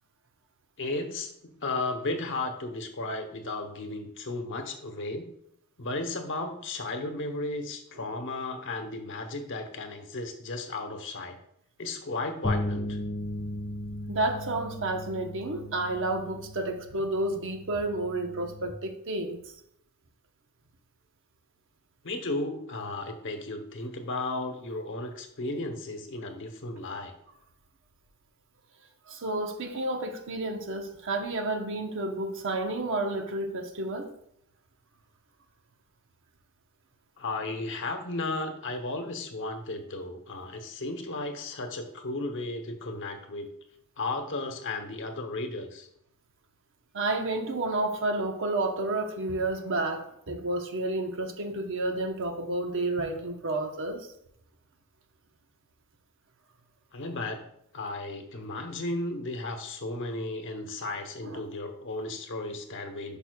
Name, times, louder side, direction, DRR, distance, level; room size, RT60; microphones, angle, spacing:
voice 1, 0.8-1.3 1.6-5.3 5.8-11.4 11.8-13.0 22.0-27.1 37.2-43.5 44.0-45.9 56.9-57.5 57.7-63.2, left 2 dB, 60° left, 6 dB, 1.0 m, -34 dB
sound 1, 12.4-18.7, left 1 dB, 15° left, 0.5 m, -36 dB
voice 2, 14.1-19.4 29.1-34.1 46.9-54.1 61.2-61.4, right 2 dB, 60° right, 5 dB, 1.0 m, -30 dB
11.0 x 5.5 x 2.3 m, 0.73 s
head